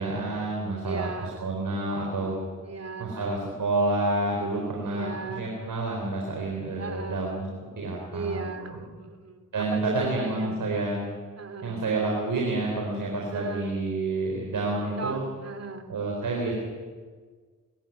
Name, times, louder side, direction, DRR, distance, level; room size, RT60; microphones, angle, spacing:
voice 1, 0.0-2.4 3.0-7.5 7.8-8.8 9.5-11.0 11.6-15.2 15.9-16.5, right 2 dB, 80° right, -1 dB, 4.2 m, -29 dB
voice 2, 0.8-1.5 2.6-3.4 4.8-5.4 6.8-7.3 8.1-10.6 11.4-11.8 13.3-13.7 15.0-15.9, right 4 dB, 50° right, 8 dB, 2.9 m, -37 dB
23.0 x 13.5 x 9.2 m, 1.5 s
supercardioid pair, 40°, 33 cm